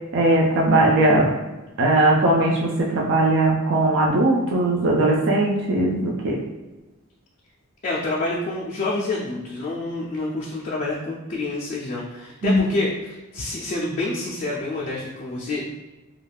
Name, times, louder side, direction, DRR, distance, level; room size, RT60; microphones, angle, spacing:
voice 1, 0.1-1.3 1.8-6.4 12.4-12.6, right 2 dB, 60° right, -2 dB, 0.4 m, -19 dB
voice 2, 7.8-15.7, left 2 dB, 35° left, -5 dB, 0.4 m, -28 dB
2.4 x 2.2 x 3.2 m, 1.1 s
head